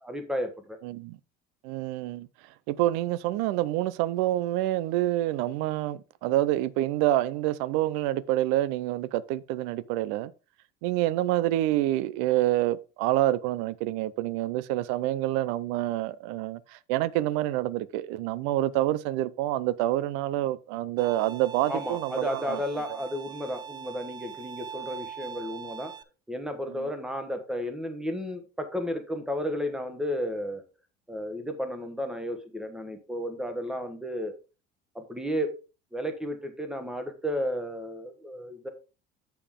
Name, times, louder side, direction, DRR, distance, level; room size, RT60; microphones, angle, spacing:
voice 1, 0.0-0.8 21.7-25.9 26.3-30.6 31.1-34.3 34.9-35.5 35.9-38.7, equal, 5° right, 1.1 m, -33 dB
voice 2, 0.8-1.2 1.6-2.3 2.7-10.3 10.8-22.6 26.7-26.9, right 15 dB, 85° right, 0.5 m, -27 dB
Bowed string instrument, 21.0-26.0, right 8 dB, 20° right, 0.4 m, -42 dB
6.9 x 6.9 x 3.7 m
cardioid pair, 160°, 20 cm